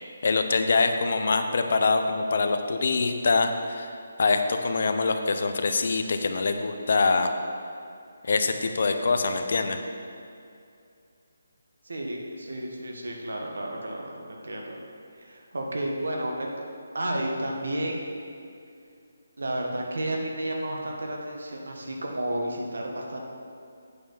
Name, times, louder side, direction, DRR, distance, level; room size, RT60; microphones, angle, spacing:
voice 1, 0.2-3.9 4.2-7.3 8.2-9.8, left 4 dB, 60° left, 7 dB, 0.7 m, -24 dB
voice 2, 11.9-14.8 15.2-16.5 16.9-18.2 19.4-23.2, right 1 dB, 80° right, 0 dB, 1.6 m, -32 dB
8.5 x 4.7 x 7.2 m, 2.4 s
figure-of-eight pair, 160°, 0 cm